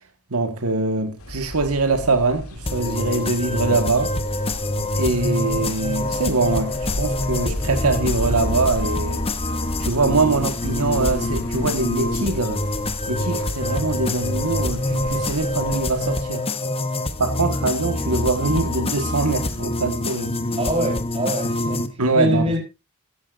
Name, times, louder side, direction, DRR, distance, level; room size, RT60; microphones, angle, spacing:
voice 1, 0.3-4.1 5.0-9.3 9.8-12.6 13.1-16.5 17.2-20.3 22.0-22.5, right 3 dB, 80° right, 1.5 m, -23 dB
sound 1, 1.2-16.2, left 1 dB, 70° left, 2.6 m, -33 dB
sound 2, 2.7-21.9, left 2 dB, 25° left, 1.0 m, -26 dB
voice 2, 20.6-22.6, equal, 25° right, 4.0 m, -24 dB
16.0 x 13.0 x 2.5 m
head